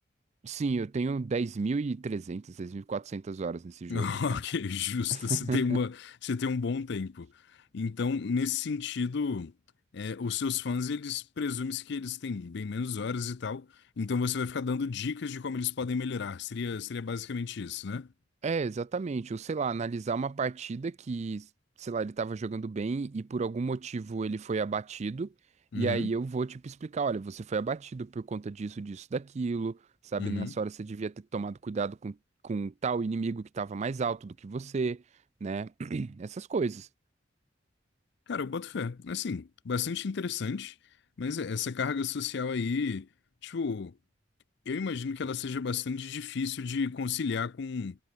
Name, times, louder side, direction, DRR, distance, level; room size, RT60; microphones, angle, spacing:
voice 1, 0.4-4.1 5.1-5.8 18.4-21.5 21.8-25.3 25.7-29.8 30.1-32.2 32.4-35.0 35.4-36.9, right 4 dB, 35° right, 0.4 m, -32 dB
voice 2, 3.9-7.3 7.7-9.5 9.9-13.7 14.0-18.1 25.7-26.1 30.2-30.5 38.3-40.7 41.2-43.1 43.4-44.0 44.7-48.0, left 5 dB, 65° left, 0.5 m, -32 dB
head